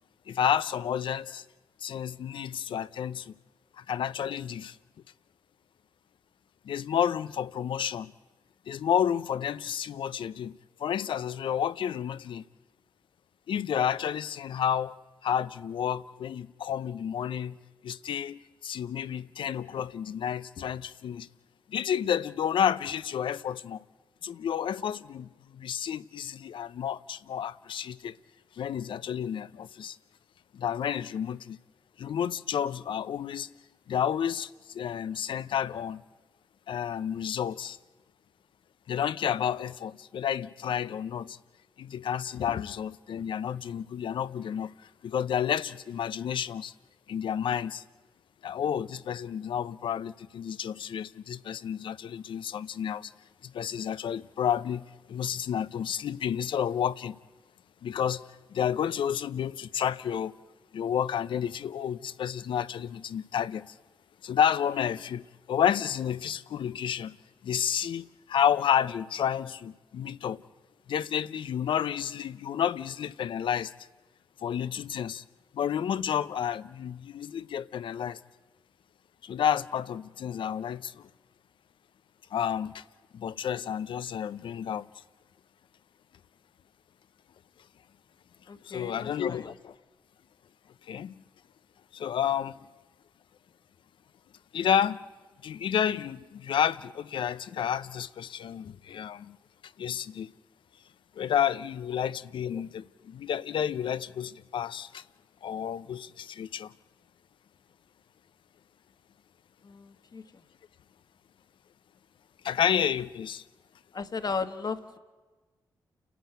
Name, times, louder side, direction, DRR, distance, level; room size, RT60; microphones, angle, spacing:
voice 1, 0.3-1.4 1.8-3.3 3.8-4.8 6.6-8.1 8.7-12.4 13.5-14.9 15.2-17.6 17.8-21.3 21.7-23.8 24.2-28.2 28.6-30.0 30.5-31.6 32.0-33.5 33.9-36.0 36.7-37.8 38.9-41.4 41.8-44.7 45.0-46.7 47.1-47.8 48.4-53.1 53.4-57.2 57.8-58.2 58.5-60.3 60.7-63.7 64.2-67.2 67.4-70.4 70.9-73.7 74.4-75.2 75.5-78.2 79.2-81.1 82.3-82.8 83.1-84.9 88.6-89.7 90.9-91.1 91.9-92.5 94.5-95.0 95.4-99.4 99.8-100.3 101.2-105.0 105.4-106.7 112.4-113.4, left 9 dB, 75° left, 0.7 m, -30 dB
voice 2, 88.5-89.5 109.6-110.2 113.9-115.0, left 5 dB, 50° left, 1.7 m, -35 dB
29.5 x 12.0 x 9.2 m
supercardioid pair, 50°, 9 cm